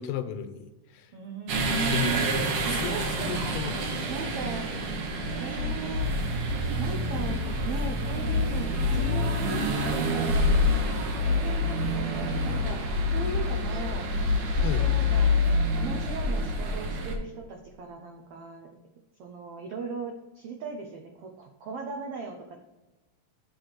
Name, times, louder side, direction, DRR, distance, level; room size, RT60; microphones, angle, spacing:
voice 1, 0.0-1.1 1.6-3.9 14.6-14.9, left 7 dB, 85° left, 8 dB, 2.2 m, -35 dB
voice 2, 1.1-2.3 2.7-3.3 4.1-4.7 5.3-6.1 6.8-7.4 7.6-14.1 14.6-15.4 15.7-18.7 19.2-22.6, right 4 dB, 85° right, 2 dB, 1.3 m, -37 dB
sound 1, 1.5-17.2, left 1 dB, 65° right, 2.1 m, -27 dB
7.5 x 3.5 x 5.9 m, 1.0 s
omnidirectional pair, 3.7 m